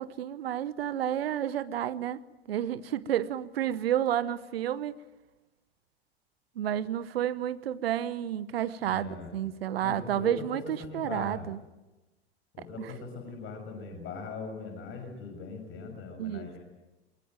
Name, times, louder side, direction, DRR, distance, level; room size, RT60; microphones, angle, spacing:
voice 1, 0.0-2.2 2.5-5.0 6.6-11.6 12.8-12.9 16.2-16.5, right 11 dB, 70° right, 16 dB, 1.1 m, -31 dB
voice 2, 8.8-9.3 9.8-10.4 10.8-11.5 12.5-16.6, left 4 dB, 40° left, 4 dB, 6.3 m, -40 dB
23.5 x 23.0 x 9.2 m, 1.1 s
figure-of-eight pair, 80°, 32 cm